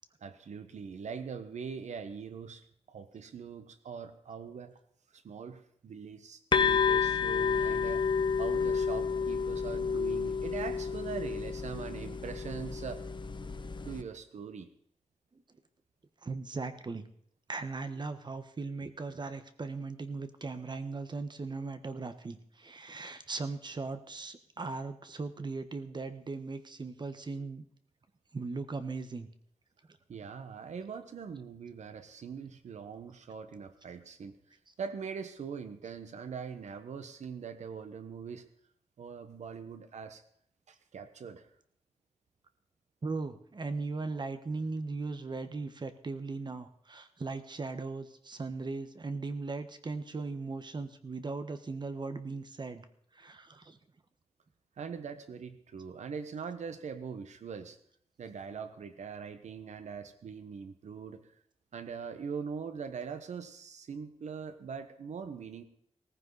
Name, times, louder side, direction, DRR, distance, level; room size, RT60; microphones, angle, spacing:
voice 1, 0.2-4.8 5.1-8.0 8.4-13.0 13.8-14.7 30.1-34.3 34.8-38.4 39.0-40.2 40.7-41.5 54.8-57.8 58.2-61.2 61.7-65.6, right 6 dB, 90° right, 10 dB, 1.2 m, -42 dB
sound 1, 6.5-14.0, left 6 dB, 45° left, 1.0 m, -30 dB
voice 2, 16.2-17.1 17.5-27.6 28.3-29.3 34.7-34.8 43.0-52.9 53.1-53.8, right 3 dB, 40° right, 10 dB, 1.2 m, -38 dB
17.5 x 15.0 x 4.1 m, 0.66 s
wide cardioid pair, 105°, 12 cm